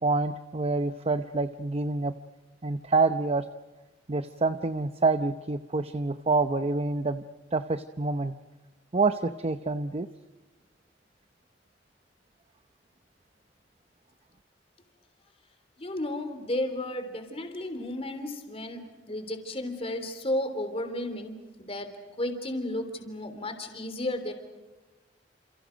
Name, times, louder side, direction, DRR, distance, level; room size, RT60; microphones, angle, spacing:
voice 1, 0.0-2.1 2.6-3.5 4.1-7.2 7.5-8.3 8.9-10.1, right 3 dB, 35° right, 10 dB, 0.7 m, -27 dB
voice 2, 15.8-21.3 21.6-21.9 22.2-24.3, left 1 dB, 35° left, 7 dB, 3.4 m, -33 dB
29.5 x 28.5 x 5.2 m, 1.2 s
head